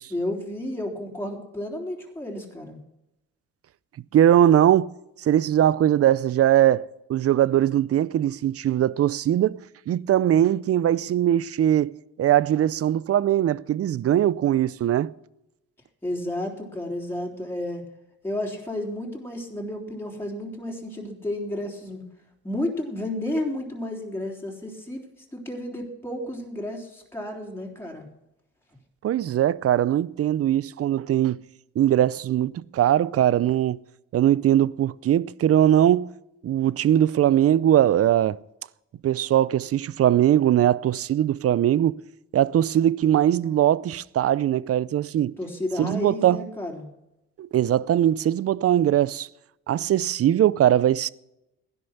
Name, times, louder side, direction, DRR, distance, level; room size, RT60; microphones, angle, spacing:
voice 1, 0.1-2.8 16.0-17.8 18.2-22.0 22.4-25.0 25.3-28.1 45.4-46.9, left 1 dB, 10° left, 3.5 m, -32 dB
voice 2, 4.1-4.9 5.2-11.9 12.2-15.1 29.0-31.4 31.8-33.8 34.1-36.1 36.4-38.4 39.0-42.0 42.3-45.4 45.8-46.4 47.4-49.3 49.7-51.1, right 11 dB, 50° right, 0.6 m, -21 dB
15.5 x 11.0 x 5.9 m
cardioid pair, 90°, 30 cm